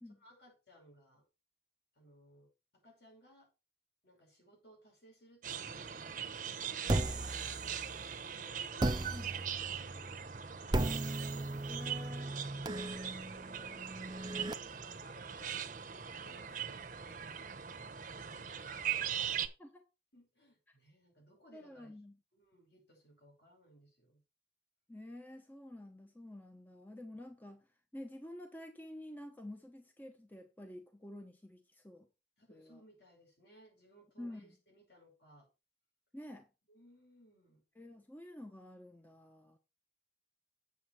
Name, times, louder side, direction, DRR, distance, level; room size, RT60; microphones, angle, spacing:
voice 1, 0.2-1.3 1.9-3.5 4.0-6.3 6.9-11.0 12.6-17.2 18.1-19.2 20.1-22.0 22.3-24.2 32.4-35.5 36.7-37.6, equal, 65° left, 5.9 m, -63 dB
sound 1, 5.4-19.5, right 8 dB, 45° right, 0.9 m, -41 dB
sound 2, 6.9-8.2 8.8-14.5, right 2 dB, 25° right, 0.5 m, -37 dB
voice 2, 11.7-12.3 19.6-19.8 21.5-22.2 24.9-27.6 27.9-32.1 32.5-32.7 34.2-34.5 36.1-36.5 37.8-39.6, left 1 dB, 10° left, 0.9 m, -49 dB
8.3 x 7.2 x 4.4 m
head